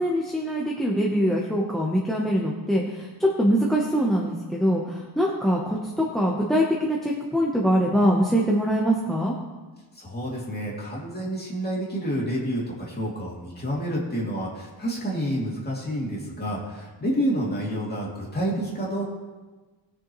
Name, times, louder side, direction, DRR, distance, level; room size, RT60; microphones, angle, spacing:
voice 1, 0.0-9.3, equal, ahead, -2 dB, 0.9 m, -23 dB
voice 2, 10.0-19.0, equal, 20° left, -5 dB, 2.7 m, -29 dB
19.5 x 6.8 x 3.1 m, 1.3 s
wide cardioid pair, 175°, 46 cm